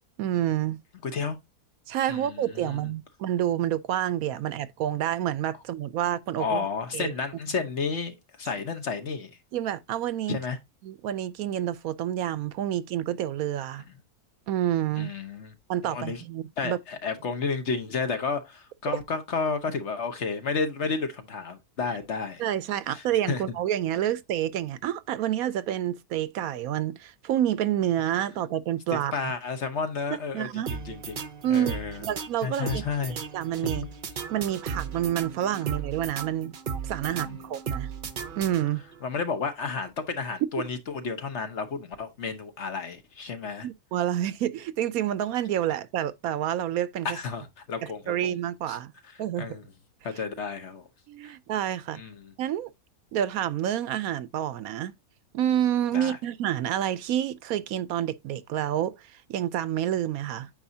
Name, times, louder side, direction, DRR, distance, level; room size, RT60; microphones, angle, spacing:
voice 1, 0.2-0.8 1.9-6.7 6.9-7.1 9.5-10.4 10.8-13.8 14.5-15.1 15.7-16.8 22.4-29.1 30.3-30.7 31.4-32.8 33.1-33.8 34.3-36.5 36.8-37.9 38.4-38.8 43.6-47.2 47.8-48.9 49.2-49.6 51.1-52.0 52.4-52.7 53.1-54.9 55.3-60.5, right 11 dB, 75° right, 1.0 m, -28 dB
voice 2, 1.0-1.4 2.1-2.9 6.4-9.4 10.3-10.6 15.0-15.5 15.8-16.2 16.6-22.4 22.9-23.4 28.9-31.2 31.5-32.0 32.4-33.2 33.7-33.9 37.1-37.4 39.0-43.7 47.0-48.3 48.7-48.8 49.4-49.6 50.0-50.9 51.9-52.3 55.9-56.2, left 5 dB, 50° left, 1.2 m, -32 dB
sound 1, 30.7-39.0, right 6 dB, 45° right, 0.8 m, -36 dB
8.9 x 5.3 x 2.7 m
omnidirectional pair, 1.6 m